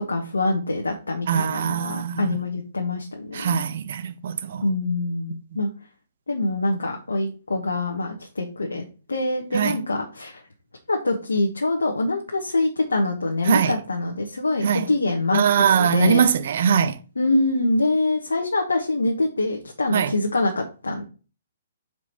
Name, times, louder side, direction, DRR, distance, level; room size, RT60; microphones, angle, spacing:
voice 1, 0.0-3.6 4.6-5.7 6.3-8.8 9.1-10.4 10.9-16.3 17.2-21.0, left 2 dB, 90° left, 1.1 m, -25 dB
voice 2, 1.3-2.4 3.3-4.6 9.5-9.8 13.5-13.7 14.6-14.9 15.3-17.0 19.9-20.1, right 7 dB, 60° right, 0.7 m, -22 dB
4.8 x 4.7 x 5.5 m
hypercardioid pair, 135°, 0 cm